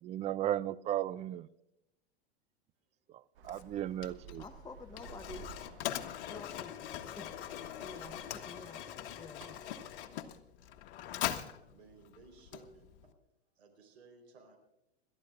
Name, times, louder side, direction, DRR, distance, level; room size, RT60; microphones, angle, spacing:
voice 1, 0.0-1.5 3.4-4.4, right 12 dB, 20° right, 17 dB, 0.4 m, -35 dB
Traffic noise roadway noise, 3.3-10.3, right 6 dB, 55° right, 1.3 m, -56 dB
Mechanisms, 3.4-13.1, left 11 dB, 55° left, 1.3 m, -42 dB
voice 2, 4.4-5.5 6.3-6.7 7.1-7.4 7.8-9.4, left 4 dB, 10° left, 5 dB, 1.0 m, -49 dB
voice 3, 11.7-13.1 13.6-14.6, right 4 dB, 70° right, 3 dB, 3.9 m, -58 dB
27.5 x 12.5 x 2.4 m, 0.88 s
hypercardioid pair, 95°, 33 cm